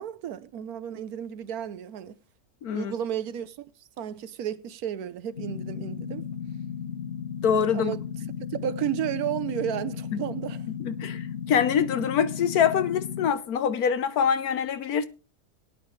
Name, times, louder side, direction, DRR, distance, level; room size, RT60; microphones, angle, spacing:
voice 1, 0.0-2.2 2.7-3.7 4.0-6.2 7.7-8.0 8.5-10.6, right 10 dB, 75° right, 1.2 m, -32 dB
voice 2, 2.6-2.9 7.4-7.9 10.1-10.2 10.8-15.1, left 7 dB, 75° left, 1.4 m, -25 dB
sound 1, 5.4-13.3, left 8 dB, 45° left, 1.4 m, -35 dB
18.0 x 10.0 x 3.2 m
omnidirectional pair, 1.6 m